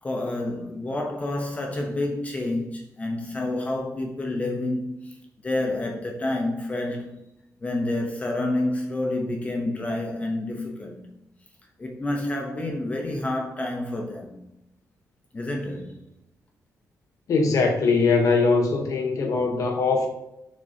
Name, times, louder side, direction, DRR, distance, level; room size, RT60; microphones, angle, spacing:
voice 1, 0.0-5.2 5.4-7.2 7.6-11.1 11.8-14.4 15.3-16.0, left 2 dB, 25° left, 0.8 m, -29 dB
voice 2, 17.3-20.1, left 4 dB, 60° left, 1.1 m, -21 dB
7.2 x 6.2 x 2.8 m
wide cardioid pair, 180°, 6 cm